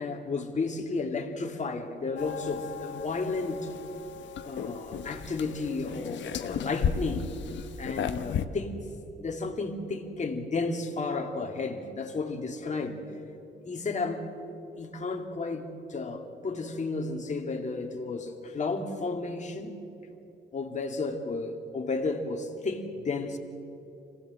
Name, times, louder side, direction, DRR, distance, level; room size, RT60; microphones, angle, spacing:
voice 1, 0.0-3.7 4.4-7.3 7.8-8.8 9.2-13.0 13.6-14.2 14.8-19.8 20.5-23.4, left 3 dB, 35° left, 3 dB, 2.6 m, -33 dB
sound 1, 2.2-8.5, left 7 dB, 65° left, 1.1 m, -34 dB
25.5 x 17.0 x 7.8 m, 2.9 s
cardioid pair, 90°, 20 cm